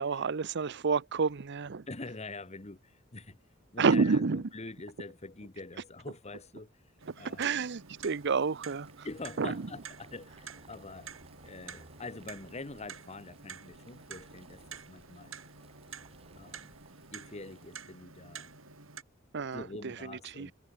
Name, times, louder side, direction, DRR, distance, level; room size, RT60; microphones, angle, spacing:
voice 1, 0.0-1.9 3.8-4.4 7.2-8.9 9.4-9.6 19.3-20.5, right 4 dB, 55° right, 0.7 m, -29 dB
voice 2, 1.9-3.4 3.7-6.9 7.2-7.5 9.0-11.1 11.4-15.4 16.4-16.7 17.1-18.5 19.5-20.5, left 3 dB, 35° left, 1.4 m, -45 dB
Boiling, 6.8-18.1, right 2 dB, 30° right, 3.4 m, -60 dB
Clock, 7.0-19.0, right 6 dB, 75° right, 7.3 m, -49 dB
head